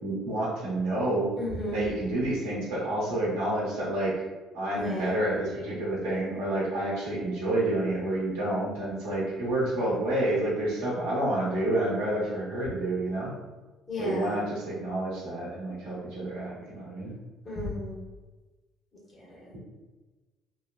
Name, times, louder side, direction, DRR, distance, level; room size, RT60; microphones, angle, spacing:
voice 1, 0.0-1.3 1.7-4.1 4.5-13.3 14.0-17.1, right 1 dB, 75° right, -7 dB, 0.9 m, -29 dB
voice 2, 1.4-1.8 4.7-5.1 13.9-14.4 17.5-18.0 19.1-19.5, left 1 dB, 40° left, -5 dB, 1.2 m, -34 dB
3.1 x 2.1 x 2.3 m, 1.2 s
hypercardioid pair, 55°, 0 cm